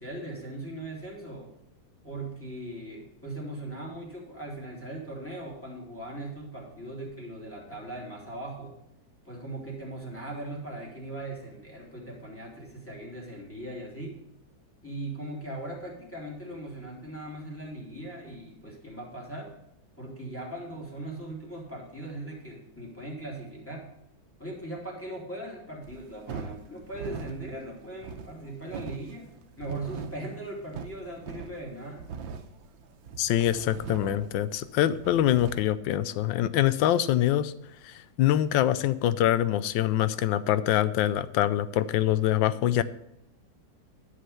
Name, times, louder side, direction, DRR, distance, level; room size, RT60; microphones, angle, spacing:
voice 1, 0.0-1.5 2.0-8.8 9.2-14.2 14.8-19.5 20.0-23.9 24.4-32.1, right 1 dB, 5° left, -3 dB, 2.9 m, -39 dB
sound 1, 25.8-35.7, right 6 dB, 85° right, 1.6 m, -42 dB
voice 2, 33.2-37.5 37.8-42.8, left 12 dB, 85° left, 15 dB, 1.3 m, -24 dB
11.0 x 6.7 x 5.6 m, 0.83 s
omnidirectional pair, 2.0 m